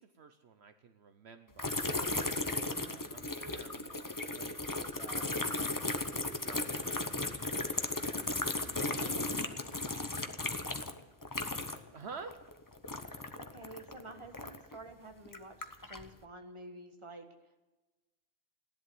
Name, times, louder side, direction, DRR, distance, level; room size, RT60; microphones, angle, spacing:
voice 1, 0.0-1.8 2.9-5.3 6.0-8.1 11.5-11.6 11.8-12.4, right 5 dB, 65° right, 8 dB, 1.1 m, -51 dB
sound 1, 1.6-12.0 12.2-14.7 15.3-16.1, left 2 dB, 20° left, 0.8 m, -36 dB
voice 2, 8.9-10.1 13.4-17.7, right 2 dB, 25° right, 5 dB, 1.5 m, -51 dB
15.5 x 11.0 x 7.9 m, 1.1 s
omnidirectional pair, 1.2 m